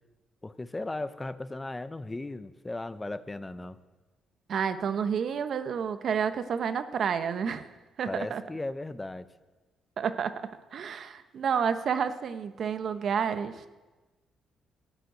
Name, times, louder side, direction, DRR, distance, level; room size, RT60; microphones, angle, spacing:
voice 1, 0.4-3.8 8.1-9.3, left 2 dB, 15° left, 13 dB, 0.7 m, -36 dB
voice 2, 4.5-7.7 8.0-8.4 10.0-13.7, right 7 dB, 60° right, 10 dB, 0.9 m, -30 dB
14.0 x 6.7 x 9.3 m, 1.2 s
cardioid pair, 90°, 0 cm